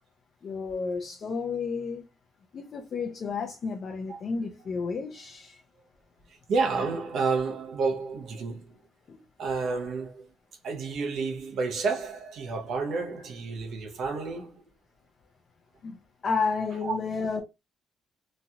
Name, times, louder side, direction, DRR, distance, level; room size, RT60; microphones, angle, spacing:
voice 1, 0.4-2.1 2.5-5.6 9.1-9.2 15.8-17.4, left 5 dB, 45° left, 0.5 m, -31 dB
voice 2, 6.3-8.8 9.4-10.3 10.6-14.7 16.8-17.0, right 4 dB, 70° right, 0.8 m, -30 dB
3.0 x 2.3 x 2.7 m
cardioid pair, 135°, 0 cm